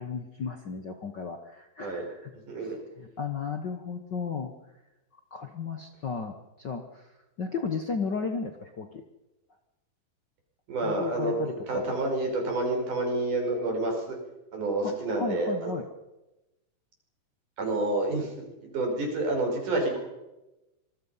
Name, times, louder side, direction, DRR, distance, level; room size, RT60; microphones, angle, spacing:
voice 1, 0.0-4.5 5.3-7.1 7.4-9.0 10.8-12.0 14.8-15.9, left 5 dB, 50° left, 6 dB, 1.3 m, -34 dB
voice 2, 10.7-11.3 11.7-14.2 14.5-15.7 17.6-20.0, right 2 dB, 75° right, 2 dB, 6.7 m, -29 dB
26.0 x 20.5 x 5.6 m, 0.99 s
omnidirectional pair, 3.6 m